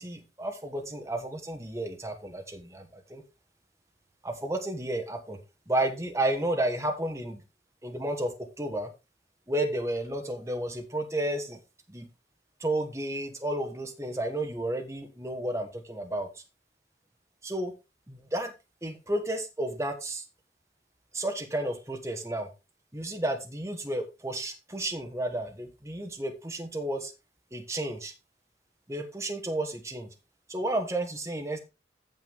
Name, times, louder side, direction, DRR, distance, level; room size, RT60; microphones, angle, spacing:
voice 1, 0.0-3.2 4.2-5.4 5.7-7.4 7.8-8.3 8.6-8.9 9.5-11.6 11.9-12.0 12.6-16.3 17.4-17.7 18.1-18.5 18.8-20.2 21.1-22.5 22.9-27.1 27.5-28.1 28.9-30.1 30.5-31.6, right 1 dB, 15° right, 4 dB, 1.3 m, -32 dB
9.1 x 7.3 x 3.5 m, 0.27 s
head